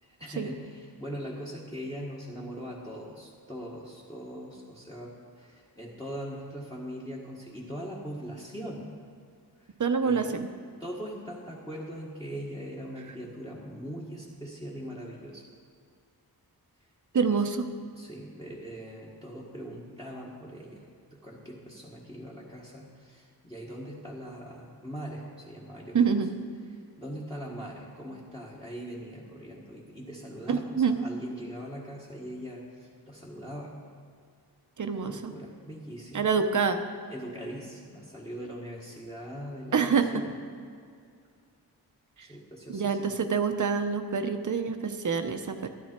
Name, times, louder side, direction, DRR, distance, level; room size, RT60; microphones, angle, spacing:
voice 1, 0.0-8.9 9.6-9.7 10.0-10.4 10.8-15.4 17.1-17.4 17.9-20.9 21.1-26.1 26.7-33.7 34.9-36.3 37.1-40.3 42.2-43.1, equal, 10° left, -6 dB, 1.4 m, -41 dB
voice 2, 9.8-10.5 17.1-17.6 25.9-26.3 30.5-31.0 34.8-35.3 36.1-36.8 39.7-40.2 42.7-45.7, right 5 dB, 50° right, 7 dB, 0.8 m, -26 dB
13.0 x 11.0 x 4.4 m, 2.2 s
wide cardioid pair, 140°, 38 cm